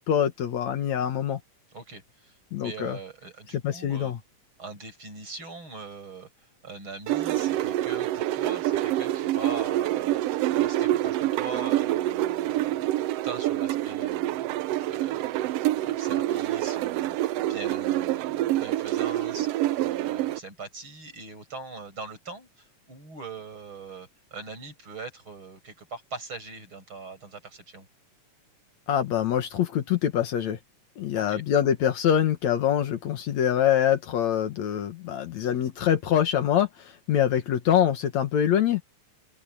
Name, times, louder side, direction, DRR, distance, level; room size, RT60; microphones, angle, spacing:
voice 1, 0.1-1.4 2.5-3.0 3.6-4.2 28.9-30.6 31.0-38.8, left 9 dB, 70° left, 2.6 m, -24 dB
voice 2, 1.7-2.3 2.6-4.1 4.6-6.3 6.6-12.8 13.2-15.3 15.8-27.9 31.1-31.4, right 3 dB, 40° right, 7.9 m, -41 dB
sound 1, 7.1-20.4, right 14 dB, 85° right, 1.4 m, -27 dB
open air
omnidirectional pair, 3.5 m